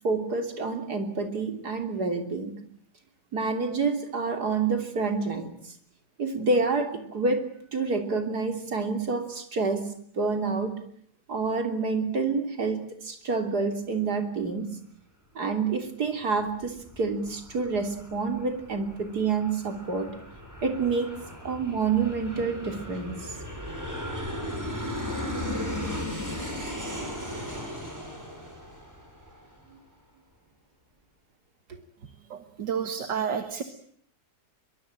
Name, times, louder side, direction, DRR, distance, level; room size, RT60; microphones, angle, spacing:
voice 1, 0.0-2.6 3.3-5.6 6.2-7.5 7.7-9.9 10.2-10.8 11.3-14.7 15.4-20.1 20.6-21.1 21.4-23.4 29.7-29.8, right 4 dB, 60° right, 6 dB, 3.6 m, -28 dB
Aircraft, 16.4-29.6, left 1 dB, 10° right, 6.6 m, -37 dB
voice 2, 32.0-33.6, right 7 dB, 75° right, 8 dB, 2.2 m, -31 dB
23.5 x 22.5 x 8.9 m, 0.64 s
omnidirectional pair, 1.9 m